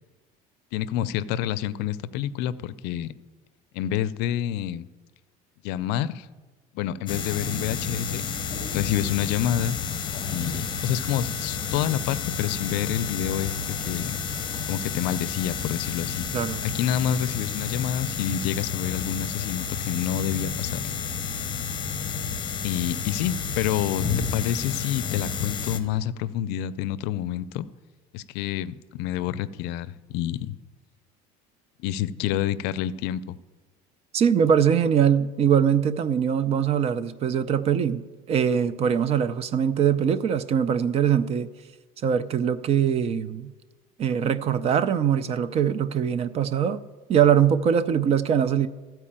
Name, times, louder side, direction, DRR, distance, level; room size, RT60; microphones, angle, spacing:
voice 1, 0.7-3.1 3.7-4.9 5.6-6.3 6.7-8.2 8.7-9.8 10.3-14.2 14.7-16.3 16.6-20.8 22.6-24.0 24.3-27.7 28.1-30.6 31.8-33.4, left 11 dB, 75° left, 0.5 m, -28 dB
sound 1, 7.1-25.8, left 6 dB, 25° left, 0.8 m, -31 dB
voice 2, 34.1-41.5 42.0-43.5 44.0-46.8 47.1-48.7, right 8 dB, 35° right, 0.4 m, -22 dB
13.5 x 4.6 x 8.7 m
cardioid pair, 150°, 17 cm